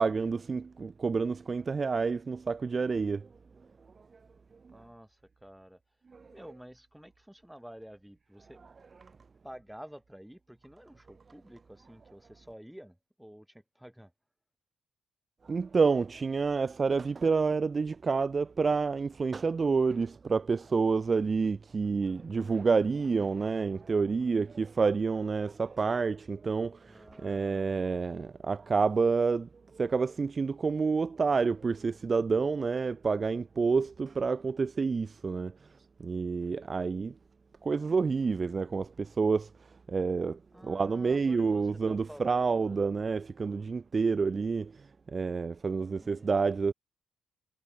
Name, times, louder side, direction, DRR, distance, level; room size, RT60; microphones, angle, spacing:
voice 1, 0.0-3.3 4.6-4.8 6.1-6.3 9.0-9.1 15.4-35.6 36.0-37.1 37.6-39.5 39.9-46.7, right 4 dB, 35° right, 0.6 m, -29 dB
voice 2, 4.7-5.8 6.3-8.7 9.4-14.1 26.9-27.9 40.5-42.8 45.8-46.4, equal, 5° right, 3.5 m, -50 dB
cardioid pair, 90°, 0 cm